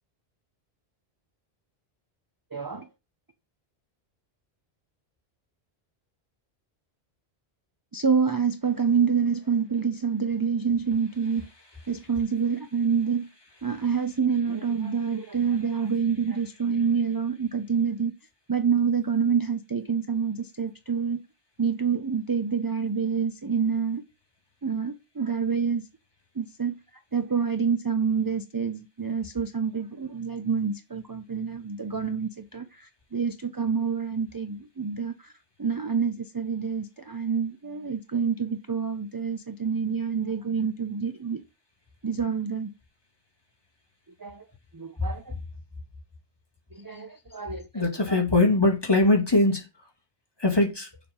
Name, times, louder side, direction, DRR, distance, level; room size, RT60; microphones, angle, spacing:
voice 1, 2.5-2.9 7.9-11.5 11.9-13.3 13.6-18.1 18.5-21.2 21.6-24.0 24.6-25.8 26.4-26.7 27.1-35.1 35.6-41.4 42.0-42.7 44.2-44.4 44.7-45.3 46.7-48.2, right 6 dB, 25° right, 0.5 m, -27 dB
voice 2, 47.7-49.7 50.4-50.9, left 2 dB, 20° left, 1.9 m, -21 dB
7.0 x 5.1 x 5.4 m
omnidirectional pair, 1.1 m